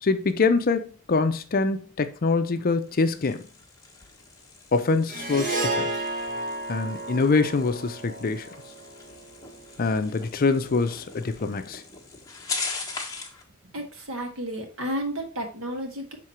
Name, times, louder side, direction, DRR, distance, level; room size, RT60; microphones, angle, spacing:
voice 1, 0.0-3.5 4.7-5.9 6.7-8.5 9.8-11.8, left 4 dB, 40° left, 0.5 m, -24 dB
sound 1, 2.7-13.4, left 4 dB, 15° left, 1.2 m, -40 dB
Harp, 5.1-9.5, right 2 dB, 40° right, 1.3 m, -32 dB
voice 2, 13.6-16.2, equal, 65° right, 1.6 m, -32 dB
6.3 x 3.7 x 4.3 m
head